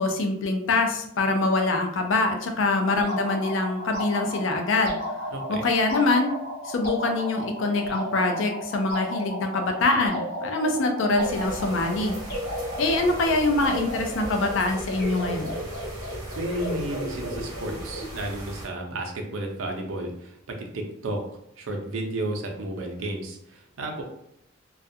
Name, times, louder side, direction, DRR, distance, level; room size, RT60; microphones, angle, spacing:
voice 1, 0.0-5.0 5.5-6.3 6.6-12.2 12.8-15.5, left 2 dB, 70° left, 4 dB, 0.4 m, -24 dB
sound 1, 2.9-18.2, equal, 50° left, 1.0 m, -34 dB
voice 2, 5.3-5.6 15.9-21.3 21.6-24.0, right 1 dB, 80° right, 2 dB, 0.5 m, -32 dB
sound 2, 11.2-18.7, equal, 20° right, 1.0 m, -39 dB
2.3 x 2.2 x 2.6 m, 0.77 s
head